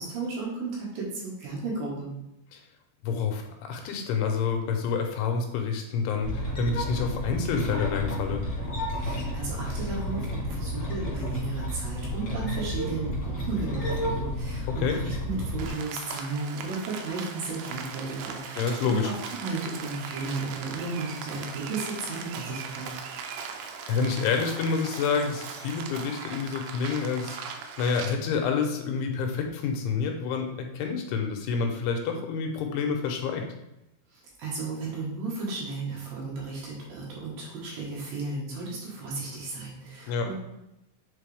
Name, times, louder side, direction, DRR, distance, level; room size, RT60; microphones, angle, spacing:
voice 1, 0.0-2.1 9.0-22.9 34.1-40.4, right 3 dB, 65° right, -5 dB, 3.1 m, -34 dB
voice 2, 3.0-8.4 14.6-15.0 18.6-19.1 23.6-33.5 40.1-40.3, left 5 dB, 85° left, 3 dB, 2.7 m, -28 dB
sound 1, 6.2-15.7, equal, 45° left, 1.6 m, -31 dB
Rain, 15.6-28.2, right 6 dB, 85° right, 2.6 m, -39 dB
7.5 x 4.1 x 3.4 m, 0.89 s
omnidirectional pair, 4.7 m